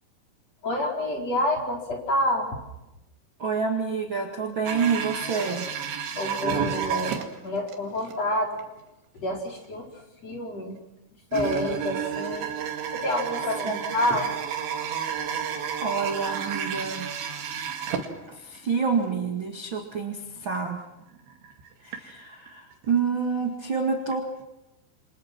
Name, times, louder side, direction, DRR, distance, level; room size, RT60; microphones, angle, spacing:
voice 1, 0.6-2.5 6.2-8.6 9.2-9.9 10.2-10.8 11.3-12.5 12.9-14.3, left 1 dB, 35° left, 0 dB, 5.3 m, -28 dB
voice 2, 3.4-5.7 13.6-13.8 15.8-17.1 18.3-20.8 21.8-24.3, right 5 dB, 40° right, 3 dB, 1.9 m, -28 dB
sound 1, 4.7-7.7 8.1-8.2 8.6-8.7 9.4-9.5 11.3-18.7 18.9-19.1 19.8-19.9 20.4-20.6 21.0-22.0 22.5-22.9 24.1-24.2 24.4-24.5, right 7 dB, 75° right, 4.4 m, -31 dB
28.5 x 26.0 x 6.1 m, 0.95 s
omnidirectional pair, 5.2 m